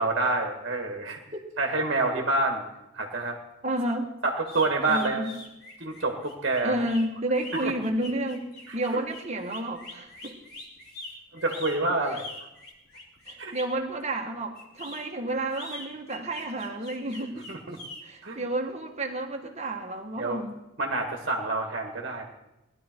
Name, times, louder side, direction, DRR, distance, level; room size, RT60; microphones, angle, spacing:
voice 1, 0.0-1.2 1.6-2.6 2.9-3.4 4.2-5.3 5.8-6.9 7.6-7.7 8.7-9.0 11.3-12.3 13.4-13.6 17.5-17.8 18.2-18.4 20.2-20.4 20.8-22.2, right 2 dB, 50° right, 3 dB, 1.6 m, -27 dB
voice 2, 3.6-4.1 4.9-5.4 6.6-8.4 8.7-10.4 13.3-17.5 18.0-20.5, right 1 dB, 30° right, 3 dB, 1.5 m, -31 dB
sound 1, 4.4-13.8 14.5-18.0, left 2 dB, 50° left, 3.6 m, -43 dB
19.0 x 12.0 x 4.5 m, 0.91 s
head